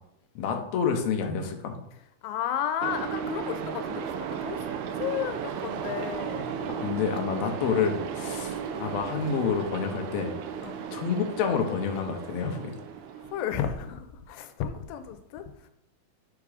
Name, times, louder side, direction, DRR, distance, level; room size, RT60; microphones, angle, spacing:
voice 1, 0.3-1.8 6.7-10.3 10.9-12.7, left 6 dB, 75° left, 4 dB, 1.7 m, -28 dB
voice 2, 2.2-4.6 4.9-6.5 7.4-7.5 8.2-8.5 10.6-10.9 13.2-15.7, left 9 dB, 90° left, 9 dB, 2.4 m, -33 dB
sound 1, 2.8-13.9, right 7 dB, 80° right, 1.8 m, -35 dB
7.1 x 3.7 x 4.8 m, 0.79 s
omnidirectional pair, 4.1 m